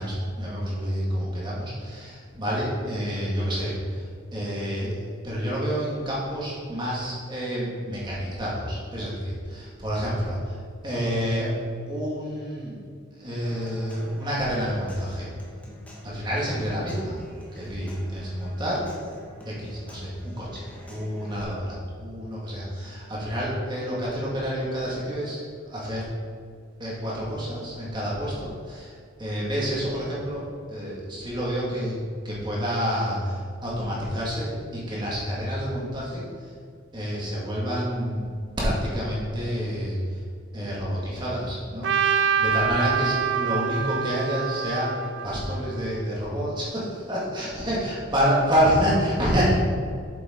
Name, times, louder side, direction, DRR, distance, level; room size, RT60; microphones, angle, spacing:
voice 1, 0.0-4.1 4.3-10.6 10.8-11.5 11.9-12.8 13.2-15.3 16.0-17.2 17.5-18.9 19.5-20.6 20.9-25.4 25.7-26.1 26.8-32.0 32.2-36.2 36.9-38.2 38.6-40.2 40.5-44.9 45.2-49.5, equal, 25° right, -6 dB, 2.2 m, -28 dB
Human voice / Acoustic guitar / Percussion, 13.4-21.4, equal, 10° left, 1.4 m, -46 dB
Trumpet, 41.8-46.0, right 7 dB, 65° right, 0.5 m, -26 dB
8.4 x 7.2 x 3.9 m, 2.1 s
head